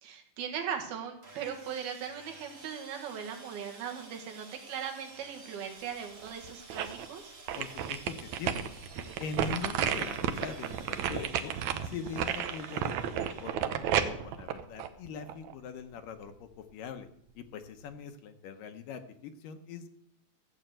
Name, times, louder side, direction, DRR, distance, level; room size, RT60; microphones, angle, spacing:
voice 1, 0.0-7.3, right 8 dB, 90° right, 3 dB, 3.6 m, -39 dB
Sawing, 1.2-13.5, right 3 dB, 30° right, 1.6 m, -52 dB
sound 1, 6.2-7.1 7.5-15.5 16.0-16.1, right 9 dB, 75° right, 1.7 m, -32 dB
voice 2, 7.6-8.5 9.2-11.5 11.8-17.1 17.4-19.9, left 6 dB, 75° left, 8 dB, 2.4 m, -42 dB
14.0 x 7.2 x 7.8 m, 0.70 s
omnidirectional pair, 4.3 m